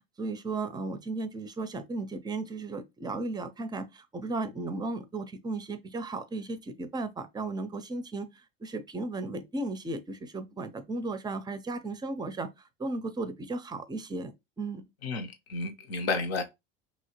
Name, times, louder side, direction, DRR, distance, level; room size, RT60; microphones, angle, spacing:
voice 1, 0.2-8.3 8.6-12.5 12.8-14.8, right 3 dB, 15° right, 0.5 m, -35 dB
voice 2, 15.0-16.4, left 3 dB, 80° left, 0.8 m, -31 dB
2.9 x 2.8 x 2.8 m
hypercardioid pair, 85°, 30 cm